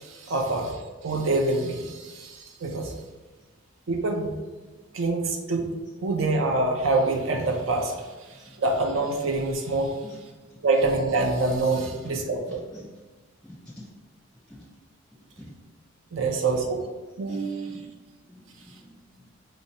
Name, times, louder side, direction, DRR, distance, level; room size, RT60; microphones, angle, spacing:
voice 1, 0.0-2.9 3.9-4.3 4.9-5.7 6.0-8.0 8.3-10.0 10.6-12.6 16.1-16.8 17.2-17.9, right 3 dB, 70° right, 2 dB, 0.5 m, -26 dB
voice 2, 11.8-12.2 12.5-12.9 13.4-13.9 14.5-14.6 15.4-15.5 17.3-17.9 18.3-18.9, left 1 dB, 5° left, -7 dB, 0.4 m, -47 dB
4.9 x 2.0 x 2.7 m, 1.3 s
head